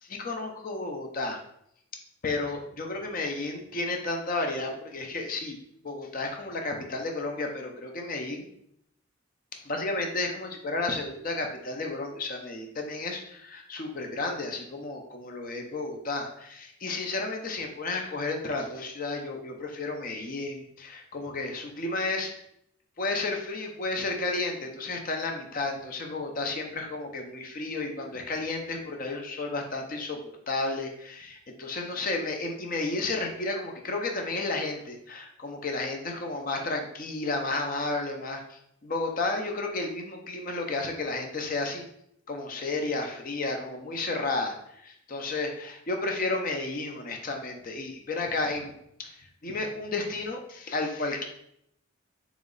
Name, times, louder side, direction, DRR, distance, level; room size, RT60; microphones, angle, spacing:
voice 1, 0.0-1.4 2.2-5.6 5.8-8.5 9.6-22.3 23.0-30.2 30.5-41.8 42.3-48.7 49.0-51.2, left 3 dB, 40° left, 3 dB, 0.5 m, -32 dB
3.9 x 3.0 x 3.8 m, 0.75 s
head